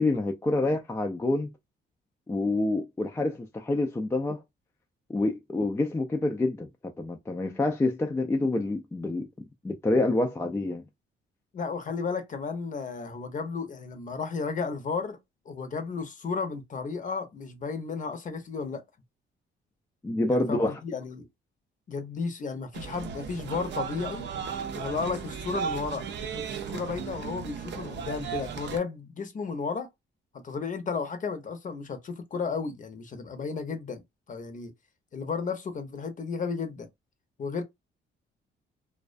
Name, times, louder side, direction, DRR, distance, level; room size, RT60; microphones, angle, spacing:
voice 1, 0.0-1.5 2.3-4.4 5.1-6.7 7.0-9.3 9.6-10.8 20.0-20.8, left 2 dB, 15° left, 0.3 m, -27 dB
voice 2, 11.5-15.2 15.5-18.8 20.3-21.3 21.9-24.3 24.7-26.4 26.7-29.9 30.3-34.0 34.3-34.7 35.1-36.9 37.4-37.6, left 5 dB, 40° left, 0.7 m, -33 dB
sound 1, 22.7-28.8, right 7 dB, 65° right, 0.5 m, -36 dB
2.3 x 2.2 x 2.4 m
cardioid pair, 90°, 20 cm